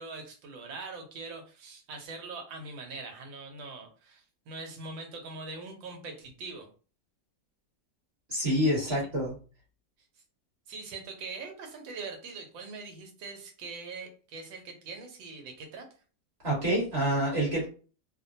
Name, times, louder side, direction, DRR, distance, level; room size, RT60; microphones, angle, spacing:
voice 1, 0.0-6.7 8.8-9.1 10.7-15.9, right 3 dB, 85° right, 3 dB, 1.5 m, -42 dB
voice 2, 8.3-9.3 16.4-17.7, equal, 35° right, -4 dB, 1.3 m, -27 dB
3.2 x 2.1 x 2.6 m, 0.38 s
omnidirectional pair, 2.1 m